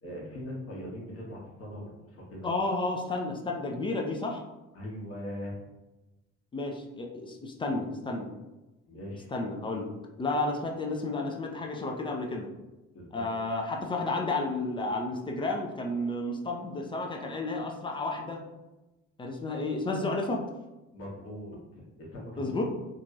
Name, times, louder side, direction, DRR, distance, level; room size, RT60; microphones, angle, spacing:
voice 1, 0.0-2.6 4.7-5.6 8.9-9.3 12.9-13.3 20.9-22.6, equal, 40° left, -2 dB, 0.9 m, -41 dB
voice 2, 2.4-4.4 6.5-8.3 9.3-9.9 10.2-12.5 13.1-18.4 19.2-20.4 22.4-22.6, left 2 dB, 15° left, 1 dB, 0.3 m, -32 dB
2.8 x 2.4 x 2.5 m, 1.0 s
figure-of-eight pair, 45°, 37 cm